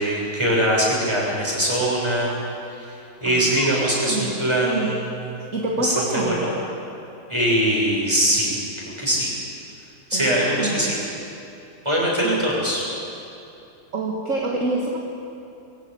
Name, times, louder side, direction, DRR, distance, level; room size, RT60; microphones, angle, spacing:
voice 1, 0.0-2.4 2.7-2.9 3.2-5.1 5.8-6.5 7.3-8.5 9.0-9.3 10.1-11.0 11.8-12.8, right 1 dB, 15° right, -4 dB, 6.5 m, -22 dB
voice 2, 3.3-5.0 5.5-6.4 10.1-10.9 12.2-12.5 13.9-15.0, right 2 dB, 50° right, 0 dB, 2.0 m, -27 dB
23.0 x 16.0 x 8.4 m, 2.8 s
omnidirectional pair, 1.8 m